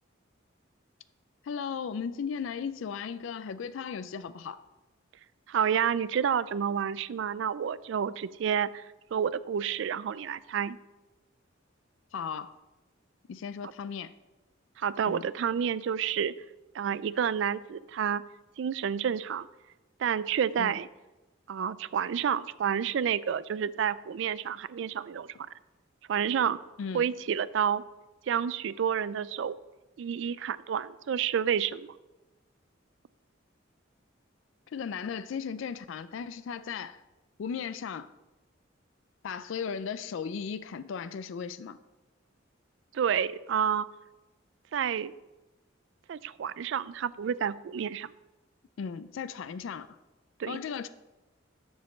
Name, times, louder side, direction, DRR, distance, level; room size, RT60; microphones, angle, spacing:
voice 1, 1.4-4.6 12.1-12.5 13.3-14.1 15.1-15.3 20.6-20.7 26.8-27.1 34.7-37.0 37.4-38.1 39.2-41.8 48.8-49.9 50.5-50.9, left 6 dB, 70° left, 0.3 m, -36 dB
voice 2, 5.5-8.8 9.1-10.8 14.8-16.3 16.7-18.2 18.6-19.5 20.0-20.9 21.5-25.3 26.1-26.6 26.9-27.8 28.3-29.6 30.0-31.9 42.9-43.9 44.7-45.1 46.1-48.1 50.4-50.6, right 8 dB, 65° right, 0.3 m, -29 dB
7.3 x 5.1 x 7.0 m
head